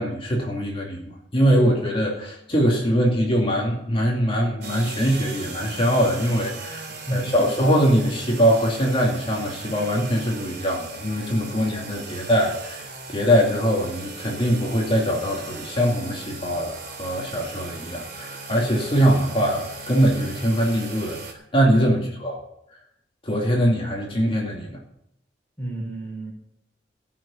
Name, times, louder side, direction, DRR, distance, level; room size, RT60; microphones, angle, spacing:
voice 1, 0.0-12.8 13.1-21.2 21.5-22.4 23.2-24.8, equal, 30° left, -1 dB, 2.5 m, -22 dB
sound 1, 4.6-21.3, right 3 dB, 55° right, 3.6 m, -38 dB
voice 2, 6.9-7.4 21.9-22.0 25.6-26.3, right 1 dB, 10° left, -3 dB, 5.1 m, -31 dB
18.0 x 6.4 x 7.0 m, 0.80 s
head